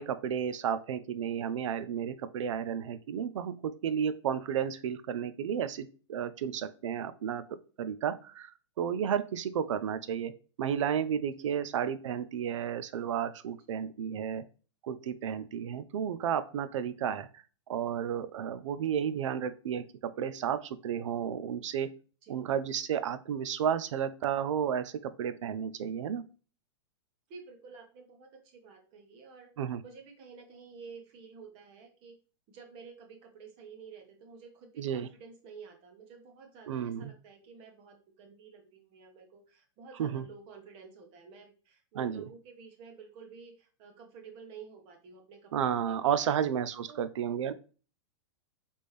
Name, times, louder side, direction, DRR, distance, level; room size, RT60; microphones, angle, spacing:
voice 1, 0.0-7.4 7.8-8.5 8.8-10.3 10.6-14.4 14.8-21.9 22.3-26.2 29.6-29.8 34.8-35.1 36.7-37.1 40.0-40.2 42.0-42.2 45.5-47.5, right 8 dB, 80° right, 13 dB, 0.6 m, -32 dB
voice 2, 27.3-29.5 29.8-32.2 32.5-46.4 46.9-47.1, right 5 dB, 35° right, 3 dB, 1.2 m, -51 dB
4.2 x 3.5 x 3.2 m, 0.37 s
hypercardioid pair, 150°, 16 cm